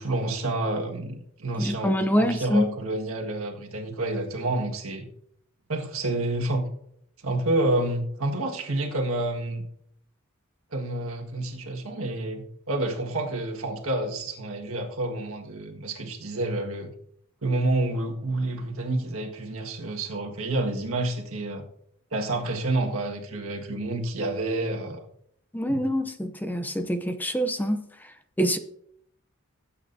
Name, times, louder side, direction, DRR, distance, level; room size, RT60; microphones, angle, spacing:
voice 1, 0.0-5.1 5.7-6.7 7.2-9.6 10.7-16.9 17.4-21.6 22.1-25.0 25.7-25.8, right 2 dB, 70° right, 1.7 m, -29 dB
voice 2, 1.6-2.7 25.5-27.8 28.4-28.6, equal, 10° left, 0.6 m, -25 dB
18.5 x 8.5 x 2.7 m
head